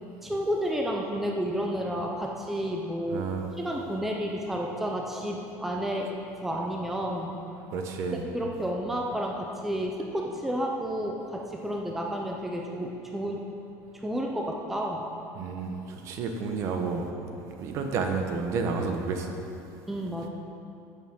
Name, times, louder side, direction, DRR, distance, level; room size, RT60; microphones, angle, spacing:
voice 1, 0.2-3.3 3.6-6.1 6.4-7.4 8.2-13.4 13.9-15.1 19.9-20.3, equal, 5° right, 0 dB, 0.6 m, -31 dB
voice 2, 3.1-3.4 7.7-8.2 15.4-17.1 17.5-19.3, right 4 dB, 45° right, 4 dB, 0.9 m, -30 dB
14.5 x 7.0 x 3.7 m, 2.8 s
cardioid pair, 165°, 7 cm